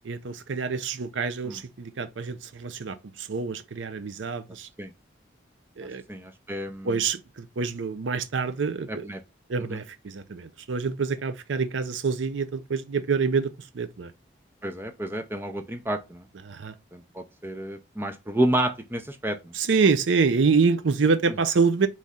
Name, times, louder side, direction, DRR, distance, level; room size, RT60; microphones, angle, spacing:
voice 1, 0.0-4.7 5.8-6.0 6.8-9.1 9.5-14.1 16.4-16.7 19.5-21.9, right 5 dB, 80° right, 0.5 m, -26 dB
voice 2, 6.1-7.0 8.9-9.2 9.7-9.8 14.6-16.3 16.9-19.5, right 1 dB, 10° right, 0.5 m, -30 dB
4.1 x 3.1 x 3.6 m
head